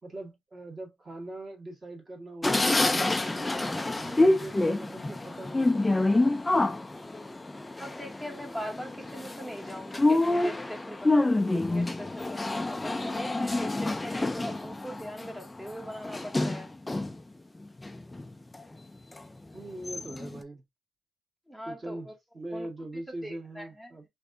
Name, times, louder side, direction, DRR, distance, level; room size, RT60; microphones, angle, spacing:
voice 1, 0.0-6.3 19.5-20.6 21.6-22.1 22.3-24.0, right 1 dB, 30° right, 1.6 m, -42 dB
sound 1, 2.4-17.2 17.6-18.6 19.2-19.3 19.6-20.4, left 2 dB, 15° left, 0.4 m, -27 dB
voice 2, 7.8-16.7 21.5-22.1 22.5-24.0, equal, 5° right, 0.8 m, -41 dB
3.3 x 2.5 x 2.5 m
cardioid pair, 90°, 0 cm